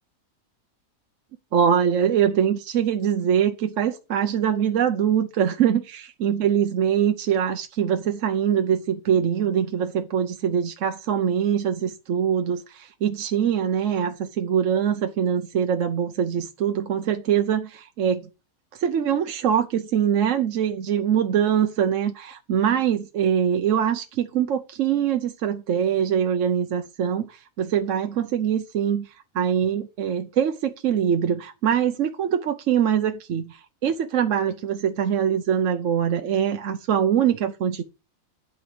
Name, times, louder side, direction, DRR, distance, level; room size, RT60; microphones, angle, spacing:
voice 1, 1.5-18.3 18.7-29.1 29.3-37.8, right 8 dB, 60° right, 1.0 m, -23 dB
10.5 x 4.5 x 5.0 m
omnidirectional pair, 1.6 m